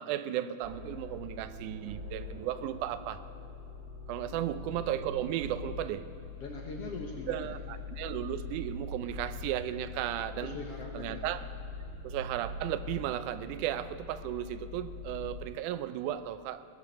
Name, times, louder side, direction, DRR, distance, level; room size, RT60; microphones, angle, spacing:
voice 1, 0.0-3.2 4.1-6.1 7.3-10.6 10.9-11.4 12.0-16.7, right 12 dB, 80° right, 13 dB, 1.9 m, -35 dB
sound 1, 0.6-15.4, left 3 dB, 55° right, 1.6 m, -43 dB
voice 2, 4.3-4.9 6.4-7.5 10.4-11.3, left 3 dB, 60° left, 1 dB, 1.8 m, -42 dB
19.5 x 10.5 x 6.4 m, 3.0 s
omnidirectional pair, 3.9 m